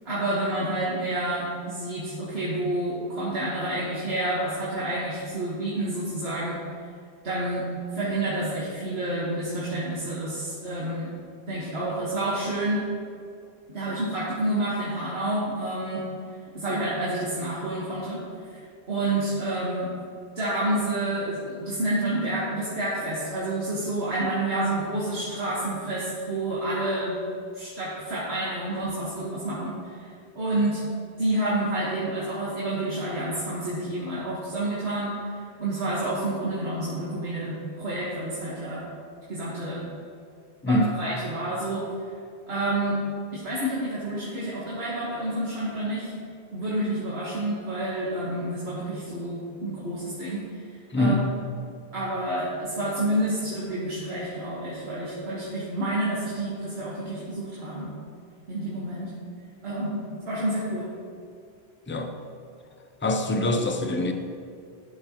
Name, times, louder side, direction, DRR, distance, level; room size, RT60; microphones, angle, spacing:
voice 1, 0.1-6.6 7.2-7.7 7.9-11.1 11.5-12.9 13.7-16.1 16.5-18.2 18.5-18.6 18.9-19.9 20.4-27.2 27.5-30.1 30.4-30.8 31.2-35.1 35.6-38.9 39.3-39.9 40.7-41.8 42.5-43.0 43.3-46.1 46.5-50.4 51.0-51.2 51.9-57.9 58.5-59.1 59.6-60.9, right 1 dB, 80° right, -8 dB, 1.7 m, -29 dB
voice 2, 50.9-51.4 61.9-62.1 63.0-64.1, left 1 dB, 20° left, 5 dB, 0.3 m, -24 dB
12.0 x 6.6 x 2.9 m, 2.4 s
omnidirectional pair, 1.1 m